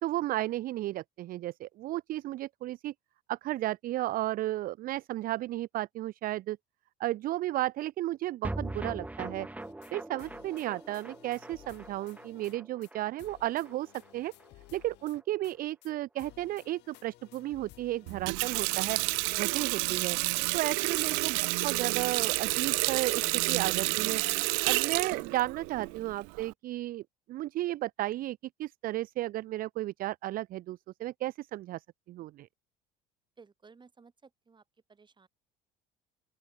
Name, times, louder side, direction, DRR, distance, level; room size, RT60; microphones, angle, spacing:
voice 1, 0.0-2.9 3.3-6.6 7.0-9.5 9.9-14.3 14.7-19.0 19.3-20.2 20.5-24.2 24.6-27.0 27.3-32.5, right 15 dB, 50° right, 0.5 m, -34 dB
sound 1, 8.4-14.9 15.1-15.2 15.5-15.6, right 2 dB, 10° right, 2.0 m, -42 dB
sound 2, 9.6-9.9 10.2-12.6 12.8-12.9 13.2-15.6 15.8-15.9 16.2-18.9, left 18 dB, 65° left, 2.9 m, -56 dB
Water tap faucet, 18.1-26.5, right 40 dB or more, 85° right, 0.9 m, -30 dB
voice 2, 33.4-34.6 34.9-35.3, right 5 dB, 25° right, 6.5 m, -57 dB
open air
supercardioid pair, 100°, 19 cm